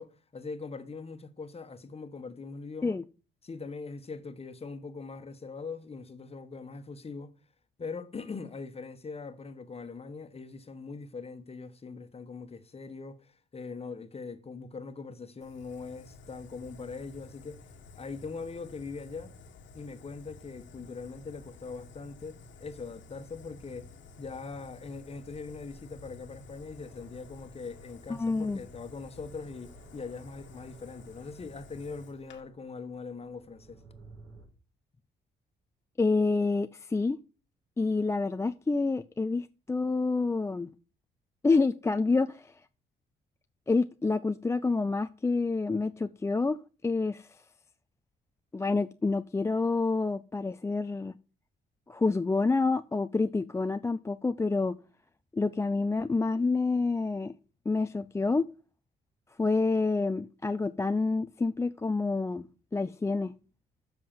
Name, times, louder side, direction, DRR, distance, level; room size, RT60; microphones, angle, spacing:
voice 1, 0.0-3.0 3.4-7.3 7.8-17.7 17.9-19.3 19.7-23.9 24.2-33.8, left 4 dB, 30° left, 1.3 m, -41 dB
Fire, 15.4-32.4, left 4 dB, 70° left, 1.4 m, -52 dB
sound 1, 23.4-34.5, right 2 dB, 55° right, 4.6 m, -58 dB
voice 2, 28.2-28.6 36.0-37.2 37.8-40.7 41.4-42.5 43.7-46.6 46.8-47.3 48.5-51.2 51.9-54.8 55.3-57.3 57.7-58.5 59.4-62.5 62.7-63.3, left 3 dB, 15° left, 0.4 m, -28 dB
7.6 x 5.8 x 7.4 m
cardioid pair, 90°, 20 cm